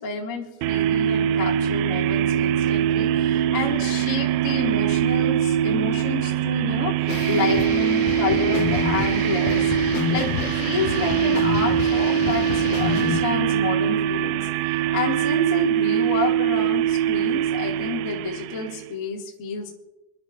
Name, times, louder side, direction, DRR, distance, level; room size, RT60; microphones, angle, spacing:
voice 1, 0.0-9.7 10.1-19.7, left 4 dB, 40° left, -2 dB, 1.1 m, -29 dB
sound 1, 0.6-18.9, right 10 dB, 85° right, 3.0 m, -23 dB
sound 2, 7.1-13.2, left 8 dB, 85° left, 2.1 m, -28 dB
29.5 x 11.0 x 2.6 m, 0.95 s
omnidirectional pair, 5.5 m